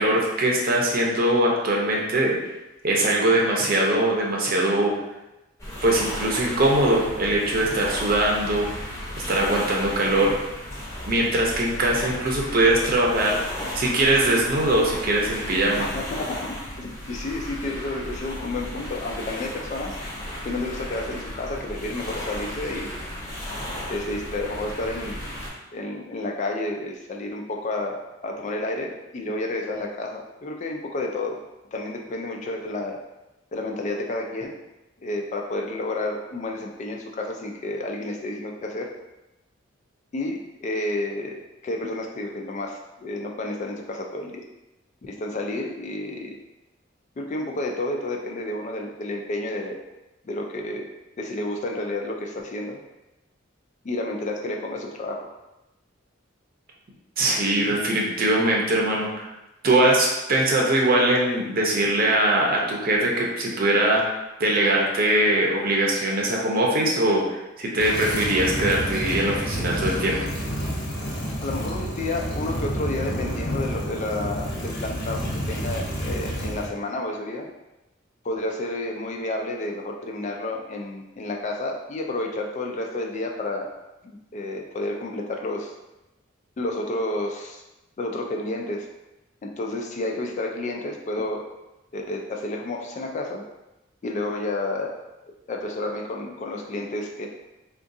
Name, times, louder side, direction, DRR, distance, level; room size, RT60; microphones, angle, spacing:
voice 1, 0.0-2.4 2.8-5.0 5.8-8.7 9.3-10.4 11.0-13.4 13.7-15.9 57.2-59.2 59.6-64.1 64.4-70.2, right 1 dB, 50° right, -2 dB, 0.6 m, -21 dB
sound 1, 5.6-25.5, equal, 15° left, 0.7 m, -35 dB
voice 2, 15.8-20.0 20.4-22.9 23.9-25.2 25.7-31.4 31.7-33.0 33.5-34.5 35.0-38.9 40.1-44.4 45.0-46.4 47.2-49.8 50.2-50.9 51.2-52.8 53.8-55.3 71.4-77.4 78.2-83.7 84.0-85.7 86.6-87.6 88.0-88.9 89.4-91.4 91.9-93.4 94.0-94.9 95.5-97.3, left 2 dB, 40° left, 1 dB, 0.3 m, -30 dB
sound 2, 67.8-76.7, equal, 60° left, 0.9 m, -29 dB
3.6 x 2.4 x 2.6 m, 0.97 s
head